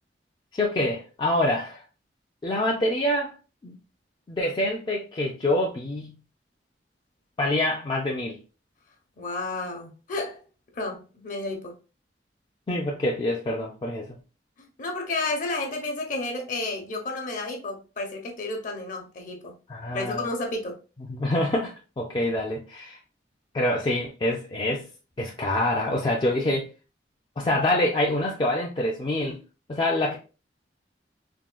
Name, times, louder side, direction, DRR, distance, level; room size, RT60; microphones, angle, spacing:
voice 1, 0.5-1.8 2.4-3.3 3.6-3.8 4.3-6.2 7.4-8.4 12.7-14.2 19.7-20.2 21.1-23.0 23.5-24.9 25.2-26.7 27.4-29.4 29.7-30.2, left 1 dB, 25° left, 0.4 m, -26 dB
voice 2, 9.2-10.4 10.7-11.7 14.8-19.5 19.9-20.7, left 2 dB, 50° left, 0.8 m, -31 dB
3.5 x 2.1 x 2.2 m
head